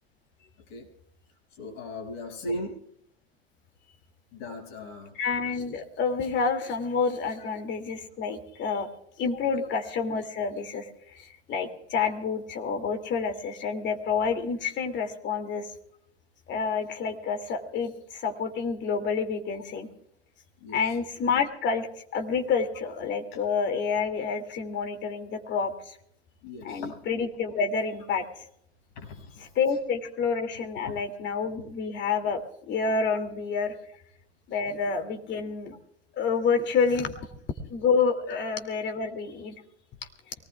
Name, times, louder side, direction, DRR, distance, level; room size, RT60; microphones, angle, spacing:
voice 1, 1.6-2.8 4.3-5.1 9.4-9.5 20.6-20.9 26.4-27.0 28.9-29.5 30.9-31.0 38.3-38.4, left 1 dB, 50° left, 1 dB, 6.6 m, -38 dB
voice 2, 5.1-8.9 9.2-15.7 16.5-19.9 20.7-21.9 22.1-26.0 26.6-28.4 29.4-32.4 32.7-33.8 34.5-35.8 36.1-37.1 37.6-39.5, left 5 dB, 35° left, 6 dB, 2.7 m, -28 dB
24.0 x 19.0 x 2.4 m, 0.71 s
hypercardioid pair, 120°, 32 cm